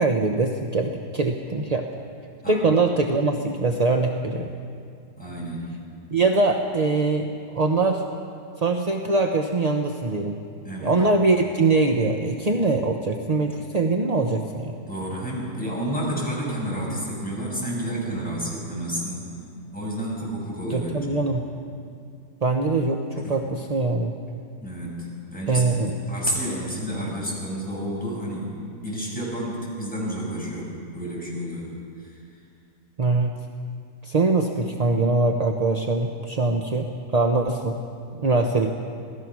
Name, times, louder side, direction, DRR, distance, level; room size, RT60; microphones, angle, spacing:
voice 1, 0.0-1.9 2.5-4.5 6.1-8.0 8.6-10.4 10.8-14.8 20.7-21.5 22.4-24.1 25.5-25.9 33.0-33.4 34.0-37.8 38.1-38.7, right 3 dB, 35° right, 3 dB, 0.7 m, -23 dB
voice 2, 2.4-2.8 5.2-5.7 10.6-11.0 14.9-19.3 19.7-21.0 23.2-23.3 24.6-25.8 26.1-28.5 28.8-31.7 32.0-32.2, right 1 dB, 5° left, -5 dB, 6.9 m, -30 dB
27.0 x 17.5 x 6.2 m, 2.4 s
omnidirectional pair, 1.8 m